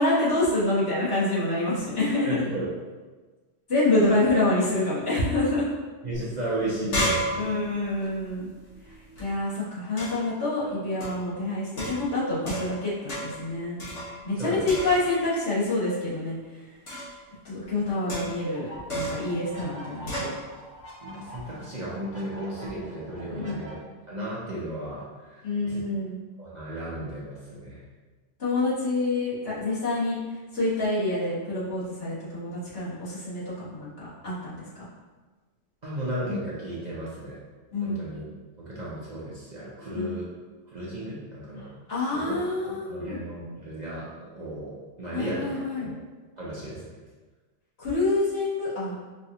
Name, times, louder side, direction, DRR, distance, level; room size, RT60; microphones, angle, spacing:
voice 1, 0.0-2.4 3.7-5.6 7.3-8.5 9.2-13.8 14.2-16.6 17.4-20.3 23.3-23.6 25.4-26.2 28.4-30.2 30.5-34.8 37.7-38.1 39.9-40.1 41.6-43.2 45.1-45.9 47.8-48.9, left 2 dB, 60° left, -11 dB, 1.8 m, -27 dB
voice 2, 2.2-2.7 4.1-4.2 6.0-7.5 14.4-14.7 21.0-23.8 24.1-25.8 26.4-27.8 35.8-37.4 37.8-38.2 38.6-40.3 40.7-41.7 42.1-42.4 42.7-45.9 46.4-46.9, right 1 dB, 45° right, -7 dB, 0.7 m, -34 dB
sound 1, 6.1-6.2 6.5-9.2 10.0-10.4 11.0-11.3 11.8-12.8 13.1-13.5 13.8-14.4 14.7-15.3 16.9-17.2 18.1-18.5 18.9-19.3 20.1-20.4, equal, 80° left, 1.5 m, -32 dB
sound 2, 18.5-23.7, equal, 15° left, 0.7 m, -45 dB
5.1 x 2.5 x 2.8 m, 1.3 s
omnidirectional pair, 1.2 m